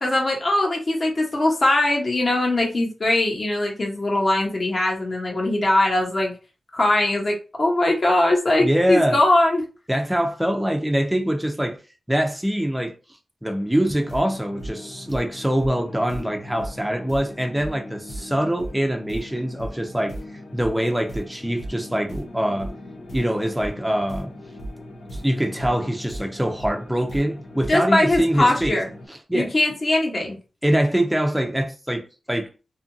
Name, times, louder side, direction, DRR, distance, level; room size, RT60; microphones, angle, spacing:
voice 1, 0.0-6.3 6.7-9.6 27.7-28.9 29.3-30.4, left 1 dB, 40° left, 0.9 m, -21 dB
voice 2, 8.6-9.2 9.9-11.8 12.1-12.9 13.4-20.2 20.5-22.7 23.1-24.3 25.1-28.8 29.1-29.5 30.6-32.5, equal, 5° right, 0.4 m, -24 dB
sound 1, 14.0-29.1, equal, 75° left, 0.8 m, -37 dB
2.7 x 2.5 x 2.6 m
wide cardioid pair, 125°, 0 cm